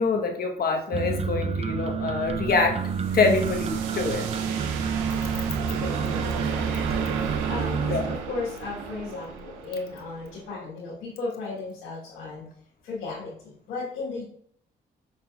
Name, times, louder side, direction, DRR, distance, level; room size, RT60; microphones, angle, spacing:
voice 1, 0.0-4.3 6.7-6.8 7.9-8.0, left 4 dB, 50° left, 3 dB, 1.0 m, -25 dB
sound 1, 0.9-8.1, right 6 dB, 30° right, 0.4 m, -29 dB
sound 2, 1.7-10.5, right 6 dB, 90° right, 0.5 m, -34 dB
voice 2, 4.2-4.7 5.7-6.7 7.1-12.5 12.8-14.2, left 3 dB, 85° left, -7 dB, 1.3 m, -36 dB
5.4 x 3.9 x 2.3 m, 0.64 s
supercardioid pair, 60°, 20 cm